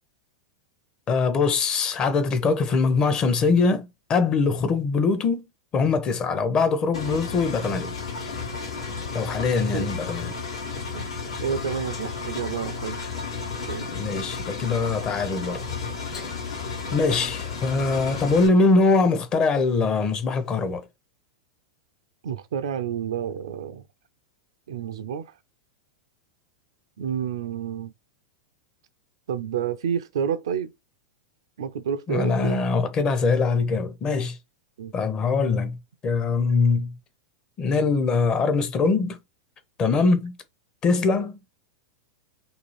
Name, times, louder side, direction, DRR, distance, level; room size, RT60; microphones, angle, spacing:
voice 1, 1.1-5.4 5.7-7.9 9.1-10.3 13.9-15.6 16.9-20.8 32.1-34.4 34.9-35.8 36.0-36.9 37.6-39.2 39.8-40.4 40.8-41.4, left 4 dB, 30° left, 0.6 m, -22 dB
Engine, 6.9-18.5, left 5 dB, 80° left, 1.1 m, -33 dB
voice 2, 11.4-13.1 13.7-13.9 22.2-23.8 24.7-25.2 27.0-27.9 29.3-30.7 31.6-32.6 34.8-34.9, right 8 dB, 70° right, 0.4 m, -29 dB
2.7 x 2.4 x 3.1 m
hypercardioid pair, 95°, 3 cm